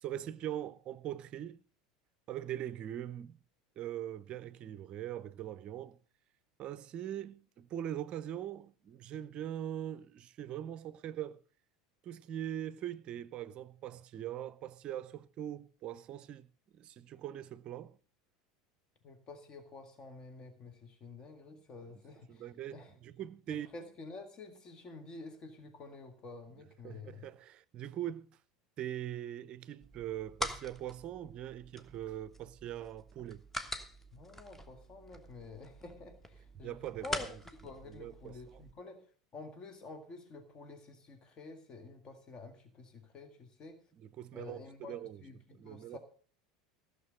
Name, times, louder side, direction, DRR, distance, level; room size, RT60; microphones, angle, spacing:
voice 1, 0.0-1.6 2.3-3.4 3.8-6.0 6.6-11.4 12.0-16.5 16.7-18.0 22.3-23.7 26.8-28.4 28.8-33.4 36.6-37.2 37.9-38.6 44.0-45.2 45.5-46.0, right 11 dB, 40° right, 0.6 m, -42 dB
voice 2, 19.0-22.5 22.7-22.9 23.5-27.2 34.1-36.7 37.0-37.3 37.6-39.0 39.3-43.8 44.3-46.0, left 3 dB, 30° left, 1.8 m, -49 dB
sound 1, 29.8-38.7, equal, 10° left, 1.4 m, -45 dB
15.0 x 6.6 x 6.4 m
figure-of-eight pair, 75°, 3 cm